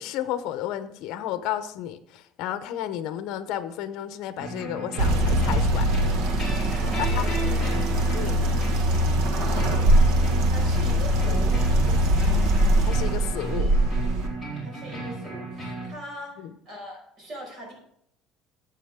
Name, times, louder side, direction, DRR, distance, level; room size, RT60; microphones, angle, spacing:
voice 1, 0.0-5.9 7.1-7.2 8.1-8.4 12.9-13.7 16.4-16.5, left 11 dB, 65° left, 11 dB, 0.8 m, -32 dB
sound 1, 4.4-15.9, right 2 dB, 5° right, 4.2 m, -35 dB
sound 2, 5.0-14.3, right 1 dB, 70° right, 1.6 m, -22 dB
voice 2, 6.8-7.8 9.0-9.9 10.4-12.5 14.6-17.7, right 1 dB, 40° right, 0 dB, 5.2 m, -41 dB
14.5 x 8.2 x 3.7 m, 0.75 s
cardioid pair, 160°, 0 cm